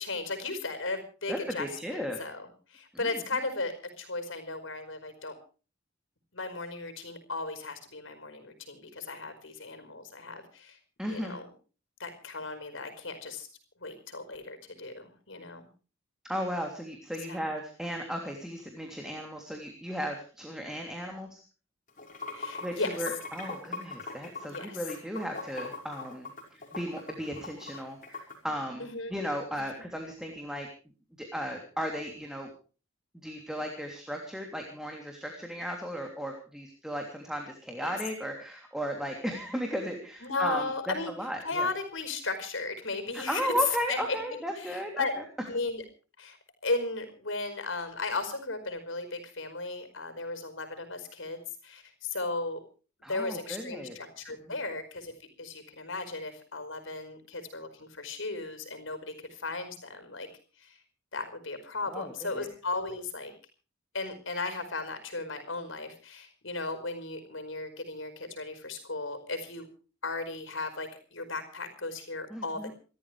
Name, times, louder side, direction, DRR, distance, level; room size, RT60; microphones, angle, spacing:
voice 1, 0.0-5.4 6.3-10.8 11.1-11.5 12.0-13.5 13.8-15.7 17.3-17.4 22.3-23.0 24.5-24.8 28.8-29.1 29.5-29.6 37.8-37.9 40.2-41.1 41.4-43.5 43.9-44.2 44.6-45.1 45.5-45.8 46.2-46.4 46.6-52.6 53.1-60.3 60.6-60.8 61.1-63.3 63.9-69.6 70.0-72.7, left 3 dB, 75° left, 9 dB, 4.9 m, -36 dB
voice 2, 1.3-2.2 3.0-3.2 11.0-11.4 16.2-21.4 22.6-30.7 31.2-32.5 33.1-41.7 43.1-45.0 53.0-53.9 54.3-54.6 61.9-62.5 72.3-72.7, equal, 5° right, 2 dB, 3.1 m, -35 dB
Water / Sink (filling or washing), 21.9-28.4, left 3 dB, 40° left, 5.9 m, -41 dB
28.5 x 13.5 x 3.4 m, 0.38 s
head